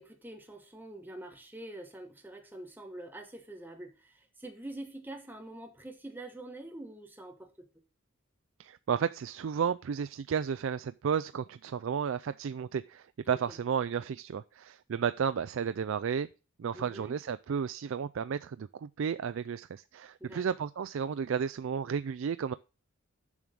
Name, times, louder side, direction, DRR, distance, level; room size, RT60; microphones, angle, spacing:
voice 1, 0.0-7.5 13.3-13.6 16.7-17.2 20.2-20.5, right 1 dB, 10° right, 1.1 m, -45 dB
voice 2, 8.6-16.3 16.6-22.5, right 7 dB, 65° right, 0.4 m, -33 dB
7.2 x 6.2 x 5.1 m
head